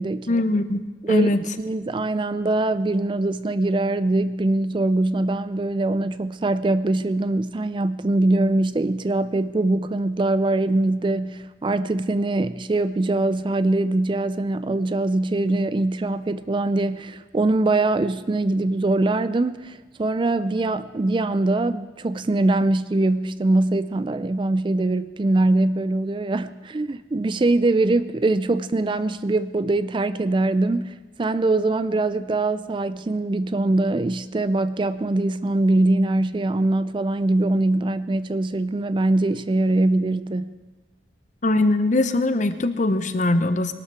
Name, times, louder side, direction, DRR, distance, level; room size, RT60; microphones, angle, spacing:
voice 1, 0.3-1.4 41.4-43.7, left 2 dB, 40° left, 11 dB, 0.8 m, -21 dB
voice 2, 1.6-40.5, right 2 dB, 25° right, 14 dB, 0.4 m, -22 dB
21.5 x 12.5 x 4.7 m, 1.2 s
head